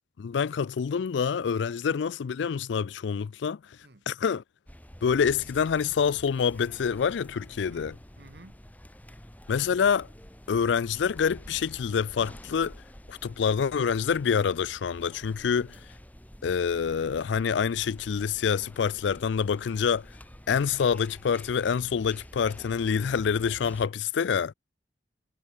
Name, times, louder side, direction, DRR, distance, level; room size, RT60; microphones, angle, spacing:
voice 1, 0.2-3.6 4.1-4.4 5.0-8.0 9.5-10.1 10.5-12.8 13.1-15.8 16.4-20.1 20.5-24.5, left 6 dB, 85° left, 0.4 m, -26 dB
sound 1, 4.7-23.9, equal, 10° left, 2.5 m, -49 dB
voice 2, 7.7-8.6 15.4-15.9, right 2 dB, 65° right, 1.7 m, -54 dB
head